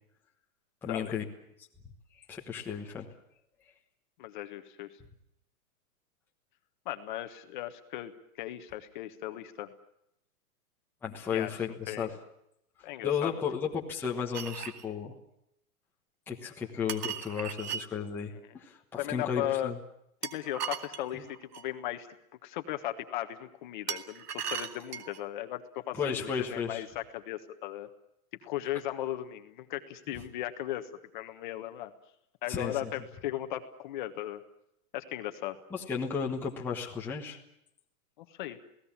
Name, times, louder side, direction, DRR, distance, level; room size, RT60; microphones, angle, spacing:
voice 1, 0.8-1.3 2.3-3.1 11.0-12.1 13.0-15.1 16.3-19.8 21.1-21.2 25.9-26.8 32.5-32.9 35.7-37.4, left 6 dB, 5° left, -2 dB, 1.2 m, -34 dB
voice 2, 4.2-4.9 6.8-8.1 8.4-9.7 11.3-11.5 11.9-12.1 12.8-13.3 19.0-19.7 20.2-22.1 22.4-27.9 28.4-31.9 32.4-34.4 34.9-35.6 38.2-38.6, left 13 dB, 30° left, 8 dB, 1.4 m, -37 dB
sound 1, 14.3-14.8 16.9-17.8 20.2-21.7 23.9-25.2, right 8 dB, 85° right, 2.3 m, -37 dB
29.0 x 18.0 x 7.3 m, 0.78 s
hypercardioid pair, 170°, 45 cm